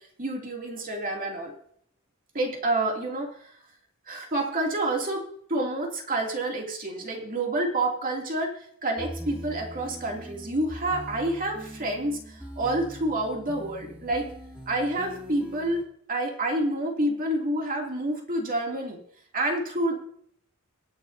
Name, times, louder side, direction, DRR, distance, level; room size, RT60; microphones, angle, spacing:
voice 1, 0.2-1.5 2.3-3.3 4.1-5.2 5.5-8.5 8.8-14.3 14.7-15.8 16.1-19.0 19.3-19.9, right 1 dB, 40° right, 0 dB, 2.7 m, -28 dB
sound 1, 9.0-15.8, equal, 5° right, 2.1 m, -41 dB
25.0 x 8.6 x 2.8 m, 0.65 s
head